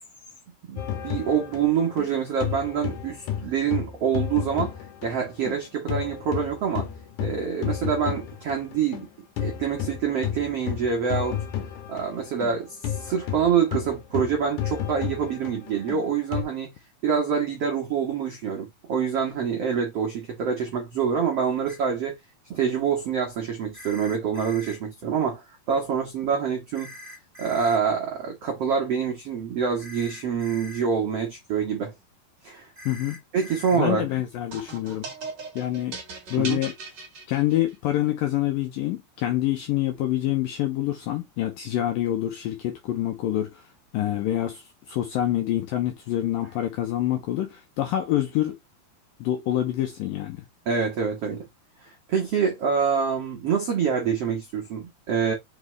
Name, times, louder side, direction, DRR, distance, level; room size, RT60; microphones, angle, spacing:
voice 1, 0.7-6.9 7.2-9.1 9.4-11.4 11.9-16.7 17.0-22.2 22.5-26.9 27.4-31.9 32.4-32.7 33.3-34.1 36.4-36.6 50.6-51.5 51.8-55.3, right 7 dB, 75° right, 1.4 m, -26 dB
sound 1, 0.8-5.6 5.9-16.4, left 10 dB, 65° left, 2.2 m, -32 dB
sound 2, 21.7-21.8 23.7-24.8 26.7-27.8 29.8-30.8 32.7-33.8, left 1 dB, 10° right, 1.8 m, -43 dB
voice 2, 32.9-33.2 33.7-35.0 35.6-35.9 36.3-36.7 37.3-43.6 43.9-48.6 49.2-50.5, left 13 dB, 80° left, 2.1 m, -26 dB
sound 3, 34.5-37.9, right 4 dB, 45° right, 1.4 m, -38 dB
6.1 x 5.1 x 3.3 m
omnidirectional pair, 5.0 m